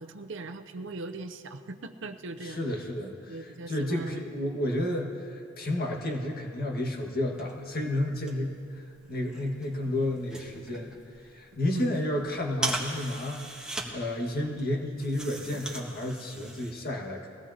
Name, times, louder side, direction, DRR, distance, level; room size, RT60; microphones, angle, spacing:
voice 1, 0.0-2.6 3.3-4.2 11.7-12.0, right 2 dB, 65° right, 9 dB, 0.7 m, -39 dB
voice 2, 2.4-17.3, left 1 dB, 50° left, 0 dB, 1.8 m, -32 dB
sound 1, 7.3-16.7, right 2 dB, 5° right, 1.4 m, -40 dB
21.5 x 16.5 x 2.9 m, 2.4 s
head